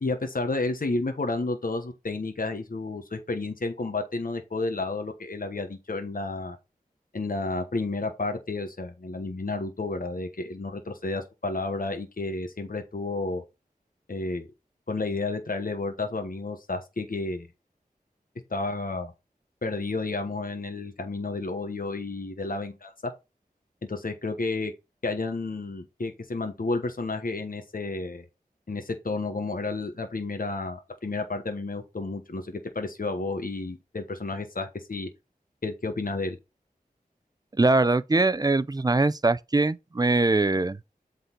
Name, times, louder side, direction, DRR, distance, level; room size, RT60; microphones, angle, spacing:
voice 1, 0.0-6.6 7.1-13.4 14.1-14.5 14.9-17.5 18.5-19.1 19.6-23.1 23.9-24.7 25.0-28.2 28.7-35.1 35.6-36.4, left 3 dB, 65° left, 1.1 m, -31 dB
voice 2, 37.6-40.8, right 2 dB, 25° right, 0.4 m, -22 dB
7.9 x 4.0 x 4.0 m
wide cardioid pair, 65°, 15 cm